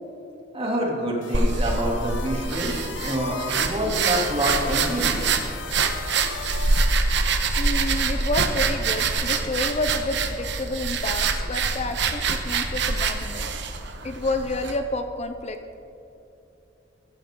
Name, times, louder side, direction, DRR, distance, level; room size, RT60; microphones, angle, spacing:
voice 1, 0.5-5.3, equal, 30° right, -3 dB, 3.0 m, -27 dB
sound 1, 1.2-6.9, left 6 dB, 75° left, 0.8 m, -38 dB
sound 2, 1.3-14.8, right 4 dB, 65° right, 1.2 m, -25 dB
voice 2, 5.7-6.1 7.6-13.5 14.0-15.6, left 2 dB, 35° left, 8 dB, 0.7 m, -30 dB
16.0 x 15.0 x 3.8 m, 2.8 s
head